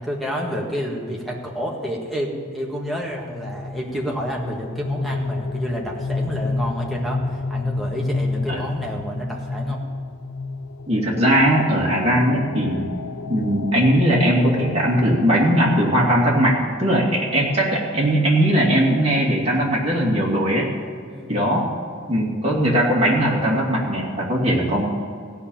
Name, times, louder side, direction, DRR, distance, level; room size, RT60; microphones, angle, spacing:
voice 1, 0.0-9.8 21.1-21.4, equal, ahead, -2 dB, 1.7 m, -29 dB
sound 1, 3.1-18.0, left 3 dB, 85° left, 0.7 m, -31 dB
voice 2, 10.9-12.9 13.3-20.7 21.3-21.7 22.1-24.8, equal, 30° right, -4 dB, 2.6 m, -19 dB
16.0 x 5.6 x 8.9 m, 2.1 s
head